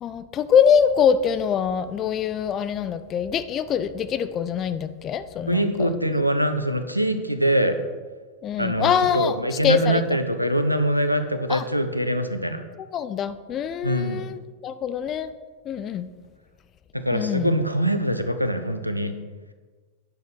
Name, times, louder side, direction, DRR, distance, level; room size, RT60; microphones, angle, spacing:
voice 1, 0.0-5.9 8.4-10.0 11.5-11.7 12.9-15.3 15.7-16.1 17.1-17.5, left 8 dB, 30° left, 12 dB, 0.5 m, -24 dB
voice 2, 5.5-7.7 8.6-12.6 13.8-14.2 16.9-19.1, right 1 dB, 90° right, 9 dB, 0.8 m, -23 dB
9.7 x 6.6 x 5.9 m, 1.4 s
figure-of-eight pair, 90°, 0 cm